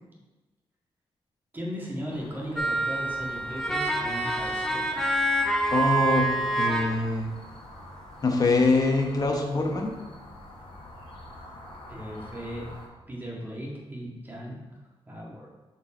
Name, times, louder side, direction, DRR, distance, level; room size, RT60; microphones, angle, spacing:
voice 1, 1.5-5.1 11.9-12.7 13.1-14.6 15.1-15.5, equal, 20° right, -4 dB, 1.9 m, -37 dB
sound 1, 2.1-12.9, left 1 dB, 60° left, 1.3 m, -46 dB
sound 2, 2.6-7.0, right 2 dB, 5° left, 0.7 m, -27 dB
voice 2, 5.7-7.3 8.2-9.9, left 3 dB, 40° left, 2 dB, 1.1 m, -24 dB
6.5 x 4.7 x 4.4 m, 1.1 s
wide cardioid pair, 120°, 10 cm